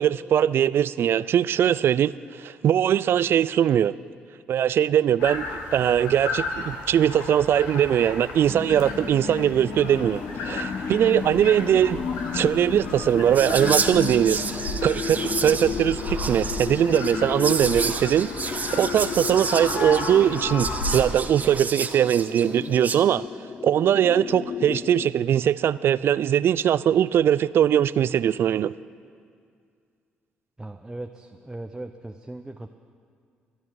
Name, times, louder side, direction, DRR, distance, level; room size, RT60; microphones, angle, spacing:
voice 1, 0.0-2.1 2.4-3.9 4.5-5.4 5.7-12.0 12.3-14.4 14.8-23.3 23.6-28.7, right 10 dB, 60° right, 19 dB, 0.4 m, -21 dB
sound 1, 5.2-21.0, left 3 dB, 80° left, 1.7 m, -34 dB
sound 2, 8.5-25.1, left 6 dB, 45° left, 0.5 m, -34 dB
Whispering, 13.3-23.0, right 4 dB, 35° right, 1.1 m, -31 dB
voice 2, 30.6-32.8, right 2 dB, 15° right, 5 dB, 0.8 m, -38 dB
24.0 x 10.0 x 4.8 m, 2.2 s
hypercardioid pair, 55°, 5 cm